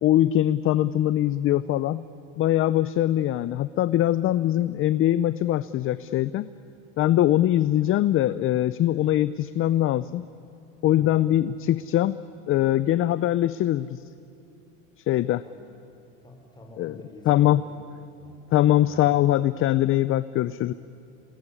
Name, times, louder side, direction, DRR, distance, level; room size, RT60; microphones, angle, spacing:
voice 1, 0.0-2.0 2.4-6.5 7.0-10.3 10.8-12.2 12.5-14.0 15.1-15.4 16.8-16.9 17.3-17.6 18.5-20.7, left 13 dB, 35° left, 15 dB, 0.5 m, -22 dB
voice 2, 10.9-11.4 15.4-15.6 16.2-17.8 18.2-19.1, left 2 dB, 10° left, 3 dB, 4.6 m, -48 dB
28.0 x 20.0 x 9.9 m, 2.6 s
supercardioid pair, 125°, 37 cm